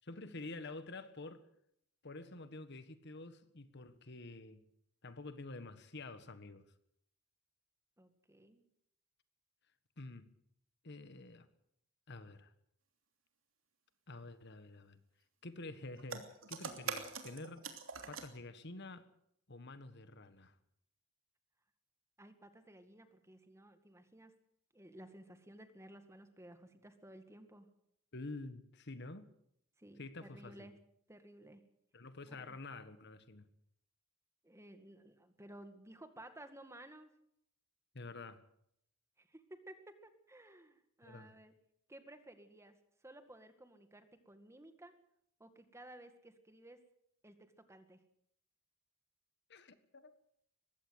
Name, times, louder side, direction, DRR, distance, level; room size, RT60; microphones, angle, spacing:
voice 1, 0.0-1.4 2.0-4.6 5.0-6.6 10.0-10.3 10.8-11.5 12.1-12.5 14.1-15.0 15.4-17.6 18.1-19.1 19.5-20.5 28.1-29.3 30.0-30.7 31.9-33.5 37.9-38.4 41.0-41.3 49.5-50.1, left 2 dB, 60° left, 1.6 m, -49 dB
voice 2, 8.0-8.6 22.2-24.3 24.7-27.7 29.8-30.8 31.1-31.6 32.3-32.6 34.4-37.1 39.2-41.5 41.9-42.8 43.0-44.9 45.4-46.8 47.2-47.4 47.7-48.0, right 1 dB, 15° right, 2.0 m, -56 dB
sound 1, 16.0-18.3, right 5 dB, 80° right, 3.0 m, -44 dB
21.0 x 16.0 x 8.1 m
head